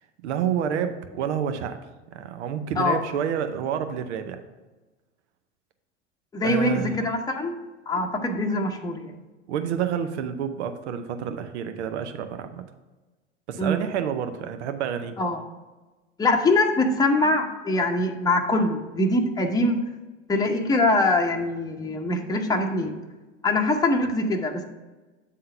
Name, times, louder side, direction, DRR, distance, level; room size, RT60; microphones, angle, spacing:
voice 1, 0.2-1.8 2.1-4.4 6.4-7.0 9.5-12.6 13.5-15.2, right 8 dB, 75° right, 8 dB, 0.7 m, -29 dB
voice 2, 6.3-7.5 7.9-9.1 13.6-13.8 15.2-15.4 16.2-19.8 20.3-23.0 23.4-24.6, left 2 dB, 10° left, 2 dB, 0.8 m, -23 dB
8.2 x 3.7 x 5.5 m, 1.2 s
hypercardioid pair, 85°, 34 cm